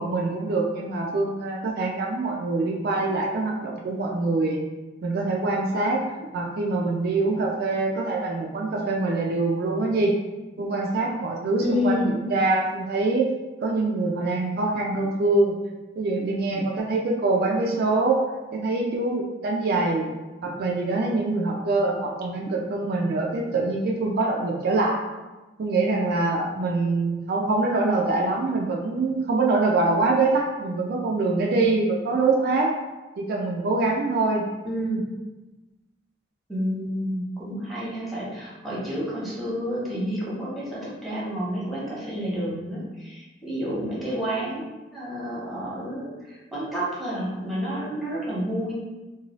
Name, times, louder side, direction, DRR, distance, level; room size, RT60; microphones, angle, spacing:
voice 1, 0.0-4.6 5.0-6.0 6.3-10.2 10.6-13.3 13.6-15.6 16.0-18.2 18.5-20.1 20.4-25.0 25.6-32.7 33.2-34.4, right 3 dB, 55° right, -1 dB, 0.3 m, -24 dB
voice 2, 11.6-12.1 34.6-35.0 36.5-44.6 44.9-48.7, equal, ahead, -8 dB, 0.9 m, -29 dB
2.6 x 2.2 x 3.0 m, 1.1 s
head